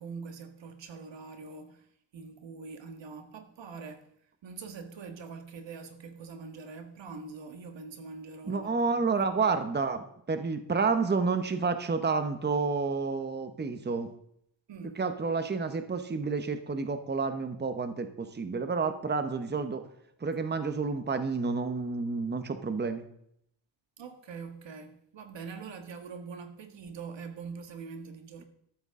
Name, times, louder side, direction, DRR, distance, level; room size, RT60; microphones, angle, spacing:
voice 1, 0.0-1.9 2.1-4.1 4.4-8.7 9.0-9.6 14.7-15.0 24.0-28.4, right 5 dB, 75° right, 1.8 m, -44 dB
voice 2, 8.5-14.1 15.0-19.8 20.2-23.0, right 4 dB, 25° right, 1.0 m, -30 dB
14.0 x 12.5 x 3.7 m
wide cardioid pair, 120°, 44 cm